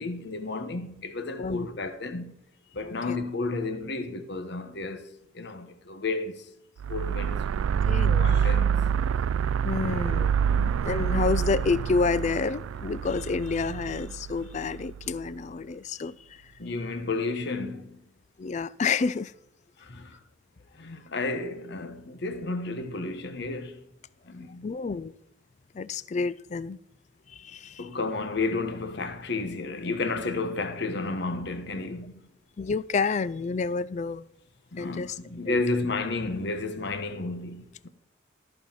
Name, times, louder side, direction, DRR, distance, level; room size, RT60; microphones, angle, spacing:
voice 1, 0.0-2.4 2.7-5.0 5.3-6.5 6.9-7.8 8.2-8.7 9.7-10.8 16.6-18.0 19.8-20.2 20.8-23.8 24.3-24.7 27.8-32.1 34.7-37.9, left 3 dB, 60° left, 1.1 m, -32 dB
sound 1, 6.8-15.1, right 7 dB, 90° right, 0.3 m, -26 dB
voice 2, 7.9-8.3 9.6-16.1 18.4-19.3 24.6-25.1 25.7-26.8 27.4-27.9 32.6-34.2 34.8-35.1 35.5-35.6, left 4 dB, 35° left, 0.3 m, -29 dB
14.0 x 5.5 x 5.8 m
head